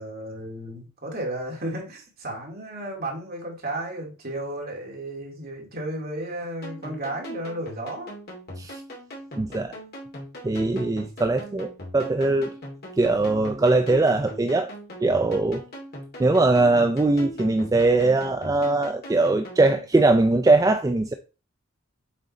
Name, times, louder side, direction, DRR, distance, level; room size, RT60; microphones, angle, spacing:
voice 1, 0.0-8.1, right 1 dB, 50° right, 2.3 m, -33 dB
sound 1, 6.6-19.9, equal, 50° left, 2.4 m, -40 dB
voice 2, 9.4-9.7 10.4-12.5 13.0-14.7 15.0-15.6 16.2-21.1, right 2 dB, 15° right, 0.3 m, -21 dB
7.5 x 3.8 x 4.2 m
head